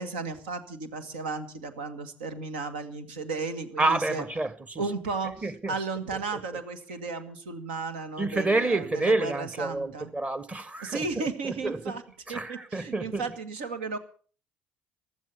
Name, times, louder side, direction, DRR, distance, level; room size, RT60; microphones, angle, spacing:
voice 1, 0.0-4.2 4.8-10.1 10.8-12.0 12.3-14.0, right 4 dB, 80° right, 1.9 m, -34 dB
voice 2, 3.8-4.9 5.4-5.8 6.3-6.4 8.2-12.0 12.3-13.3, right 2 dB, 25° right, 1.6 m, -29 dB
15.5 x 13.0 x 7.1 m
hypercardioid pair, 55°, 5 cm